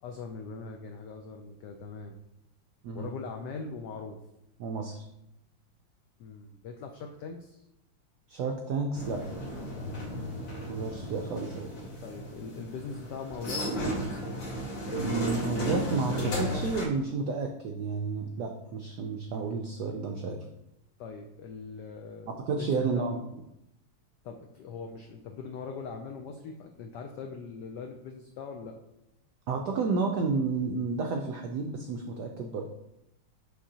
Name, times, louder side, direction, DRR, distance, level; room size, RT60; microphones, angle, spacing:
voice 1, 0.0-2.1 2.9-4.2 6.2-7.6 9.8-10.1 12.0-13.7 21.0-23.1 24.2-28.8, left 5 dB, 85° left, 4 dB, 0.9 m, -41 dB
voice 2, 4.6-5.0 8.3-9.2 10.7-11.7 15.0-20.4 22.3-23.2 29.5-32.7, right 4 dB, 85° right, 3 dB, 0.9 m, -31 dB
sound 1, 8.9-16.9, equal, 60° left, 2.3 m, -34 dB
6.4 x 6.0 x 2.8 m, 0.86 s
omnidirectional pair, 2.4 m